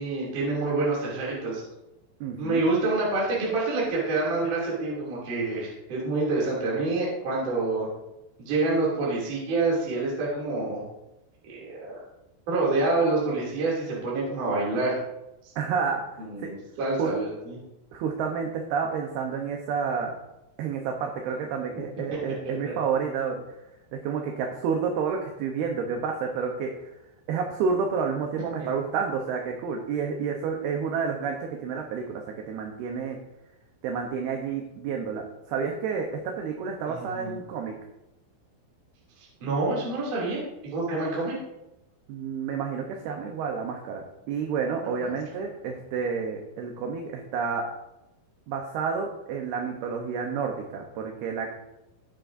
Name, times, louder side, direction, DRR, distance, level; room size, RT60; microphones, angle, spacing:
voice 1, 0.0-1.6 2.4-7.9 8.4-10.8 11.5-12.0 12.5-15.0 15.4-15.5 16.2-17.6 22.7-22.8 36.9-37.4 39.2-40.4 40.7-41.4 45.0-45.1, right 3 dB, 45° right, -6 dB, 3.8 m, -27 dB
voice 2, 2.2-2.7 15.6-16.0 16.4-16.5 17.0-17.1 17.9-20.1 20.6-23.4 23.9-26.7 27.3-33.2 33.8-37.7 42.1-47.6 48.5-51.5, right 6 dB, 75° right, 2 dB, 2.5 m, -30 dB
19.0 x 7.4 x 2.6 m, 0.92 s
omnidirectional pair, 5.5 m